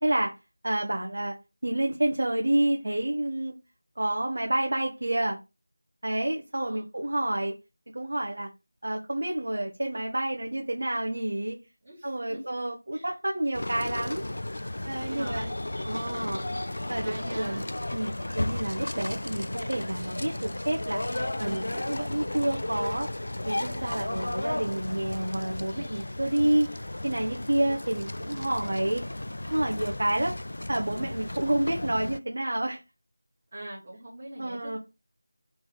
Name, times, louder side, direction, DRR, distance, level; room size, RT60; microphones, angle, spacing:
voice 1, 0.0-0.3 0.6-1.3 1.6-3.6 4.0-5.4 6.0-7.5 7.9-8.5 8.8-11.6 12.0-14.2 14.8-15.5 15.8-16.4 16.9-17.6 17.9-21.0 21.4-23.1 23.4-26.7 27.0-29.0 29.5-30.4 30.7-32.8 34.4-34.8, right 1 dB, 60° right, 1.3 m, -29 dB
voice 2, 6.6-6.9 11.8-12.5 12.9-13.1 15.1-15.6 16.1-16.4 17.0-17.7 26.3-26.7 33.5-34.8, right 1 dB, 20° right, 2.2 m, -42 dB
sound 1, 13.5-32.2, left 1 dB, 65° left, 0.3 m, -34 dB
5.4 x 4.3 x 4.0 m
figure-of-eight pair, 180°, 0 cm